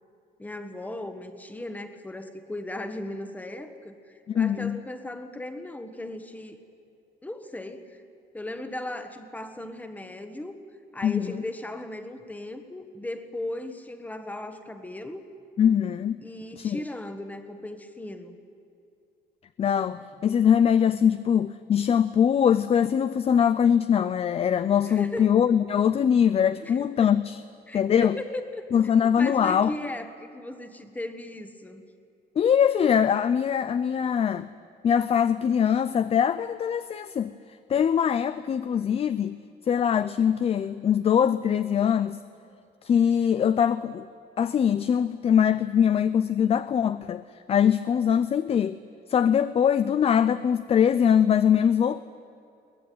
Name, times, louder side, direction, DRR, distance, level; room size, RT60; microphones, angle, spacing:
voice 1, 0.4-3.9 4.3-6.6 7.2-8.0 8.3-10.6 10.9-15.2 16.2-18.3 24.8-25.3 26.6-27.1 27.7-28.7 29.2-31.8, left 1 dB, 10° left, 8 dB, 1.5 m, -37 dB
voice 2, 4.3-4.8 11.0-11.4 15.6-16.2 16.6-16.8 19.6-27.4 27.7-28.2 28.7-29.7 32.4-34.5 34.8-37.3 37.7-39.4 39.7-42.2 42.8-44.1 44.4-47.2 47.5-48.8 49.1-52.0, left 8 dB, 35° left, 13 dB, 0.5 m, -22 dB
23.0 x 19.5 x 9.4 m, 2.6 s
cardioid pair, 160°, 18 cm